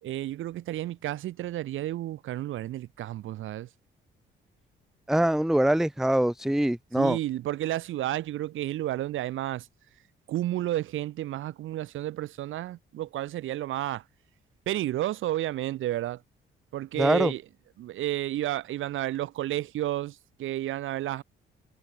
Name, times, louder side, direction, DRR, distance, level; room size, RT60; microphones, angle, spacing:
voice 1, 0.0-3.7 7.0-9.7 10.3-14.0 14.7-16.2 16.7-17.4 17.8-21.2, right 14 dB, 80° right, 3.6 m, -31 dB
voice 2, 5.1-7.2 17.0-17.3, right 1 dB, ahead, 0.5 m, -23 dB
cardioid pair, 90°, 20 cm